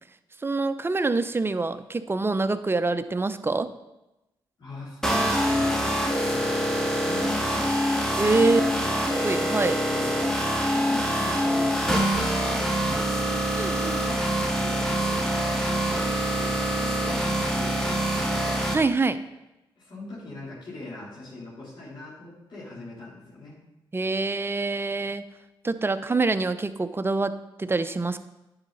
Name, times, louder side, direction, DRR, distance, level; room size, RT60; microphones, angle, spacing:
voice 1, 0.4-3.7 8.2-8.6 9.2-9.8 13.6-14.0 18.7-19.2 23.9-25.2 25.6-27.3 27.6-28.3, right 3 dB, 25° right, 11 dB, 0.6 m, -25 dB
voice 2, 4.6-6.0 6.2-8.1 8.3-9.0 9.9-10.2 10.5-11.9 12.3-14.2 14.6-15.2 15.7-18.5 19.8-23.5, left 2 dB, 55° left, -9 dB, 3.6 m, -41 dB
sound 1, 5.0-18.7, equal, 5° left, 1.6 m, -25 dB
9.7 x 6.5 x 4.0 m, 0.97 s
cardioid pair, 55°, 9 cm